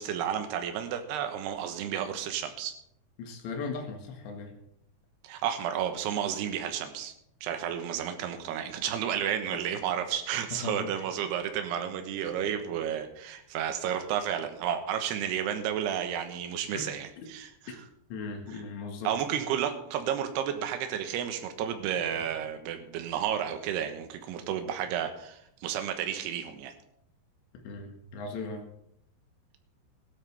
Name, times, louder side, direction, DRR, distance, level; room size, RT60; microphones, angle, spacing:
voice 1, 0.0-2.7 5.2-7.1 7.4-17.5 19.0-26.7, right 9 dB, 75° right, 7 dB, 3.1 m, -32 dB
voice 2, 3.2-4.5 10.5-11.0 16.7-16.9 17.2-17.3 17.7-17.8 18.1-19.4 27.5-28.7, left 4 dB, 80° left, 3 dB, 4.0 m, -38 dB
17.0 x 12.5 x 3.5 m, 0.74 s
omnidirectional pair, 5.1 m